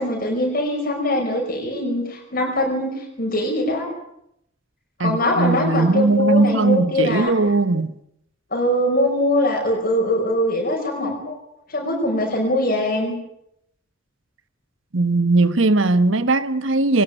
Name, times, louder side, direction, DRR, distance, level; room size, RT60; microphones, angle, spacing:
voice 1, 0.0-3.9 5.0-7.3 8.5-11.4 11.7-13.1, left 1 dB, 45° left, 5.3 m, -22 dB
voice 2, 5.0-7.9 14.9-17.0, right 3 dB, 70° right, 1.3 m, -19 dB
21.0 x 20.0 x 9.1 m
head